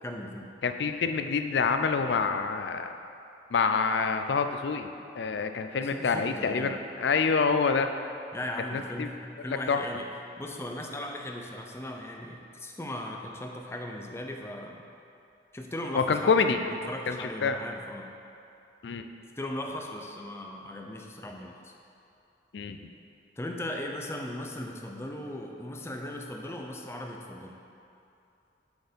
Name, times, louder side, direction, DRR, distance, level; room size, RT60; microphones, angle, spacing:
voice 1, 0.0-0.5 5.8-6.8 8.3-10.1 10.4-14.9 15.5-18.1 19.4-21.7 23.4-27.6, left 1 dB, 15° left, 1 dB, 0.5 m, -38 dB
voice 2, 0.6-2.9 3.5-4.9 5.2-7.9 8.7-9.1 9.7-9.8 15.9-16.6 17.1-17.6 18.8-19.1 22.5-22.8, left 5 dB, 70° left, 7 dB, 0.4 m, -26 dB
7.9 x 4.4 x 5.2 m, 2.6 s
head